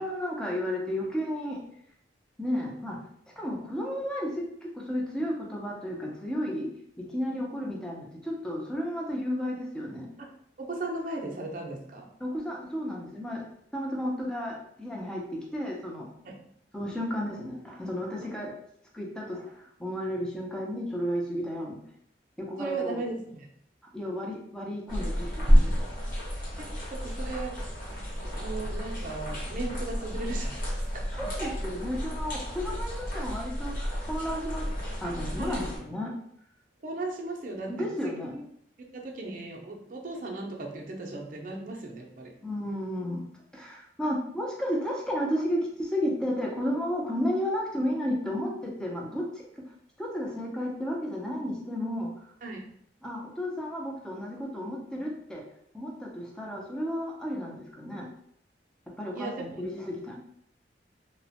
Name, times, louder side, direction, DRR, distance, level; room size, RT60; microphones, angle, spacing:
voice 1, 0.0-1.6 2.4-3.0 3.4-6.7 7.0-10.1 12.2-13.4 13.7-16.1 16.7-18.5 18.9-19.5 19.8-21.8 22.4-23.0 23.9-26.1 31.1-34.7 35.0-36.1 37.7-38.4 42.4-43.3 43.5-49.5 50.0-52.1 53.0-55.5 55.7-58.1 59.0-60.2, equal, 5° left, -2 dB, 0.5 m, -33 dB
voice 2, 10.6-12.1 16.2-16.4 18.2-18.3 22.6-23.5 26.6-27.6 28.2-31.1 35.3-35.6 36.8-38.4 38.9-42.3 52.4-52.6 59.1-59.3 59.6-59.7, right 2 dB, 50° right, 0 dB, 0.5 m, -37 dB
sound 1, 24.9-35.8, equal, 50° left, 1.0 m, -30 dB
2.9 x 2.1 x 2.8 m, 0.69 s
head